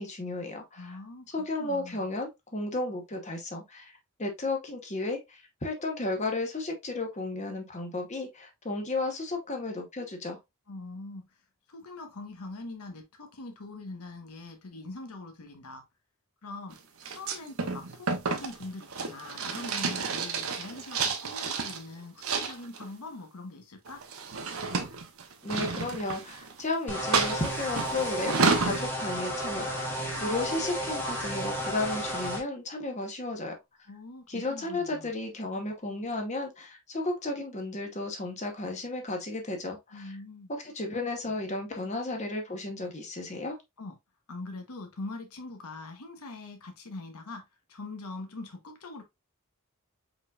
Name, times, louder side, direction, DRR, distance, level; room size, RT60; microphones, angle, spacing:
voice 1, 0.0-1.0 1.3-3.9 4.2-10.4 25.4-33.5 34.3-40.1 40.5-43.6, left 2 dB, 30° left, 0.9 m, -33 dB
voice 2, 0.8-1.3 1.6-2.0 10.7-11.3 11.7-15.8 16.4-16.8 17.1-24.0 33.9-35.1 39.9-40.5 43.8-44.0 44.3-47.4 47.7-49.0, left 2 dB, 90° left, 1.0 m, -42 dB
sound 1, 17.0-21.8 22.2-22.9 23.9-26.6 27.1-28.8, right 4 dB, 75° right, 0.8 m, -30 dB
sound 2, 26.9-32.4, equal, 10° left, 1.2 m, -33 dB
5.1 x 3.9 x 2.3 m
head